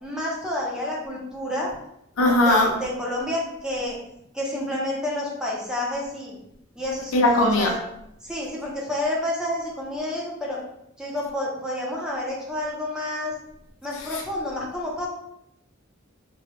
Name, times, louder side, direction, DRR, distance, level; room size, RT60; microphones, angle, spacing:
voice 1, 0.0-1.7 2.3-4.0 4.3-6.4 6.8-7.8 8.2-10.6 11.0-13.3 13.8-15.1, left 1 dB, 5° right, -4 dB, 0.6 m, -29 dB
voice 2, 2.2-2.7 7.1-7.7, left 1 dB, 90° left, 2 dB, 0.6 m, -18 dB
3.0 x 2.3 x 2.9 m, 0.79 s
head